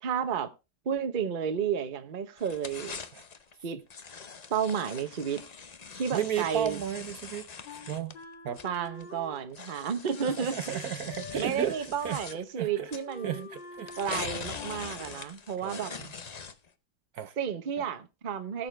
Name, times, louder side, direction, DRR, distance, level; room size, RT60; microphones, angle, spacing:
voice 1, 0.0-0.5 0.8-3.0 3.6-3.8 4.5-5.4 6.0-6.8 8.6-10.8 11.4-13.5 14.0-15.9 17.4-18.7, right 7 dB, 35° right, 0.8 m, -32 dB
sound 1, 2.4-3.5 3.9-9.0 9.5-12.4 12.9-13.1 13.8-16.7, left 5 dB, 65° left, 0.4 m, -42 dB
voice 2, 6.1-7.5 7.9-8.1 8.4-8.6 10.2-11.8 12.0-12.9 13.2-14.2 15.6-16.1 17.1-17.3, right 10 dB, 65° right, 1.1 m, -34 dB
Wind instrument woodwind instrument, 7.6-11.9 12.2-12.4 12.6-14.9, left 5 dB, 85° left, 2.1 m, -47 dB
19.5 x 6.9 x 3.3 m
omnidirectional pair, 1.9 m